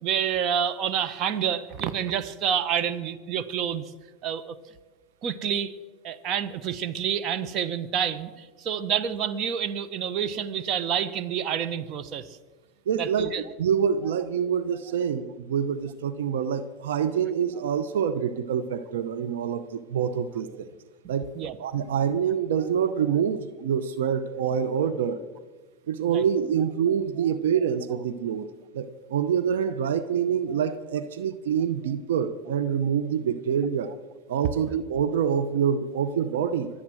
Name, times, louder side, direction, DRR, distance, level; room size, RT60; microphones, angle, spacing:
voice 1, 0.0-3.9 4.2-4.5 5.2-5.7 6.0-12.2 13.0-13.4 21.4-21.5 26.1-26.2, right 8 dB, 50° right, 12 dB, 1.1 m, -28 dB
voice 2, 12.9-13.3 13.6-20.7 21.1-21.3 21.6-25.2 25.9-28.5 28.7-33.9 34.3-36.7, right 8 dB, 85° right, 11 dB, 0.8 m, -26 dB
23.5 x 8.6 x 6.3 m, 1.3 s
hypercardioid pair, 105°, 0 cm